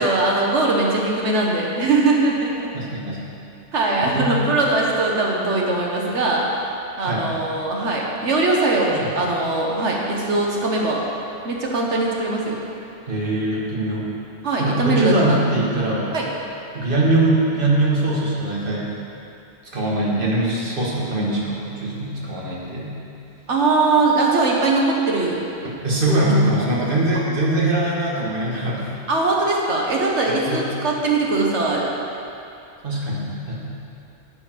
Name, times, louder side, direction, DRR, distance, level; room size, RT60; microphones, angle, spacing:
voice 1, 0.0-2.7 3.7-6.5 7.0-11.0 11.4-12.6 14.4-15.4 16.1-16.2 23.5-25.4 26.6-26.7 29.1-31.9, right 3 dB, 85° right, -2 dB, 1.6 m, -21 dB
voice 2, 2.7-3.2 4.0-4.3 7.0-7.3 8.9-9.1 13.1-14.1 14.6-16.1 16.7-18.9 19.7-23.0 25.8-28.8 30.5-30.6 32.8-33.6, right 1 dB, 50° right, -5 dB, 1.9 m, -22 dB
9.9 x 8.6 x 4.6 m, 2.7 s
omnidirectional pair, 1.2 m